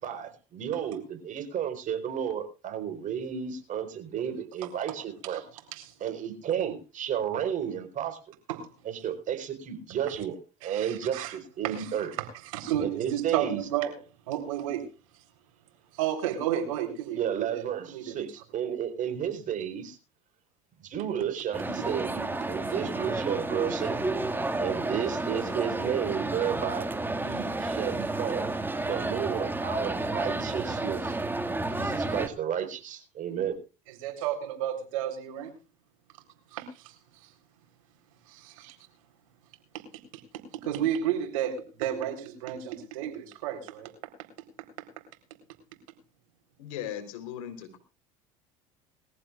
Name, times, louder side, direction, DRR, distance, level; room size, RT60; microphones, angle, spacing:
voice 1, 0.0-5.4 6.0-8.2 8.8-12.1 12.8-13.6 17.1-20.0 20.8-24.2 24.6-26.9 27.2-28.5 28.8-31.2 31.7-33.6, right 9 dB, 50° right, 4.3 m, -32 dB
voice 2, 10.6-11.4 11.6-12.3 12.5-14.0 14.3-14.9 15.9-18.3 33.9-35.5 36.5-36.9 37.2-37.3 38.3-38.8 40.6-43.9, right 10 dB, 75° right, 3.9 m, -32 dB
sound 1, 21.5-32.3, right 2 dB, 10° right, 2.1 m, -31 dB
voice 3, 46.6-47.8, left 10 dB, 75° left, 3.9 m, -38 dB
22.0 x 15.0 x 2.5 m
hypercardioid pair, 80°, 17 cm